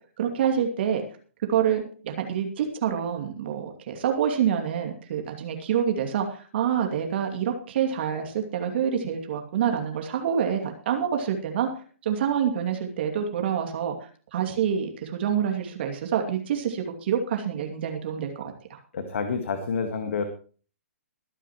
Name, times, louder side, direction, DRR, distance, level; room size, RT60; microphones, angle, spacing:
voice 1, 0.2-1.0 1.5-11.7 12.0-13.9 14.3-18.8, right 8 dB, 50° right, 3 dB, 2.5 m, -27 dB
voice 2, 18.9-20.2, left 5 dB, 60° left, 7 dB, 1.8 m, -28 dB
22.5 x 9.8 x 3.1 m, 0.40 s
figure-of-eight pair, 125°, 8 cm